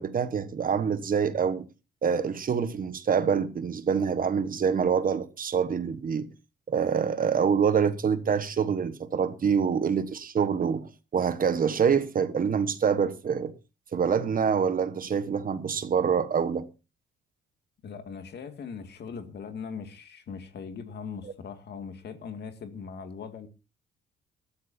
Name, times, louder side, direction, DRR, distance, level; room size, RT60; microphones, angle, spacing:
voice 1, 0.0-1.7 2.0-6.3 6.7-13.5 13.9-16.7, right 6 dB, 45° right, 1.3 m, -26 dB
voice 2, 17.8-23.5, left 6 dB, 60° left, 2.1 m, -40 dB
19.5 x 13.5 x 2.7 m
cardioid pair, 90°, 20 cm